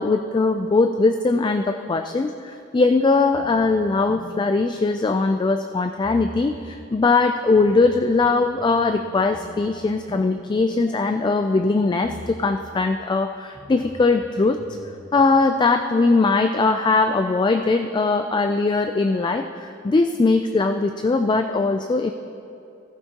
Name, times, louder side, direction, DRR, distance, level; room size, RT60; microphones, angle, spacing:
voice 1, 0.0-14.6 15.1-22.1, left 3 dB, 20° left, 7 dB, 0.3 m, -20 dB
sound 1, 3.3-5.6 6.0-6.9 7.5-11.7 12.0-12.9 13.5-15.3, left 1 dB, 5° right, 2.0 m, -44 dB
16.0 x 14.5 x 2.9 m, 2.6 s
head